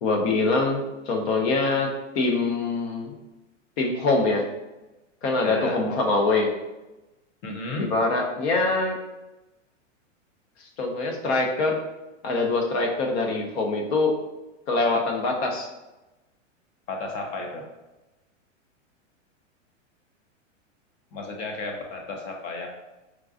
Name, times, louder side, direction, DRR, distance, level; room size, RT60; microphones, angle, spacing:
voice 1, 0.0-1.9 2.1-3.1 3.8-4.4 5.2-6.5 7.8-9.0 10.8-11.8 12.2-14.1 14.7-15.7, left 3 dB, 55° left, 2 dB, 0.9 m, -24 dB
voice 2, 5.4-6.0 7.4-7.9 16.9-17.6 21.1-22.7, left 2 dB, 25° left, 2 dB, 0.3 m, -33 dB
4.6 x 2.4 x 2.5 m, 1.0 s
hypercardioid pair, 125°, 38 cm